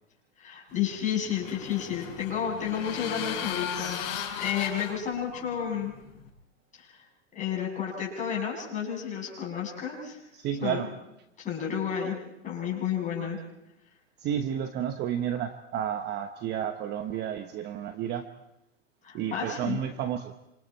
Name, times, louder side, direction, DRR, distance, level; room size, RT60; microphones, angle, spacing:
voice 1, 0.4-4.1 4.3-5.9 6.7-7.1 7.3-10.2 10.6-10.9 11.4-12.2 12.4-13.4 19.0-19.8, left 8 dB, 20° left, -2 dB, 7.7 m, -31 dB
sound 1, 0.8-6.3, left 8 dB, 45° left, 6.2 m, -37 dB
voice 2, 10.4-10.9 14.2-18.3 19.1-20.3, right 9 dB, 25° right, 8 dB, 1.0 m, -31 dB
27.0 x 27.0 x 4.5 m, 0.89 s
hypercardioid pair, 140°, 39 cm